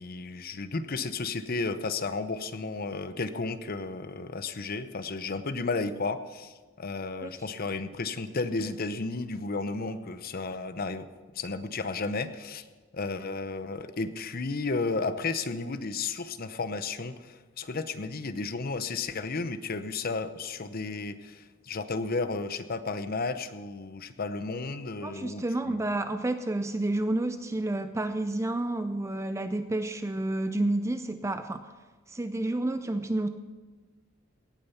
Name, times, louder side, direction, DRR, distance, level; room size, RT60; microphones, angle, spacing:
voice 1, 0.0-11.1 11.3-12.6 12.9-25.9, left 3 dB, 50° left, 11 dB, 0.8 m, -33 dB
voice 2, 25.0-31.7 32.1-33.3, right 2 dB, 15° right, 9 dB, 0.4 m, -30 dB
17.5 x 8.8 x 5.7 m, 1.3 s
head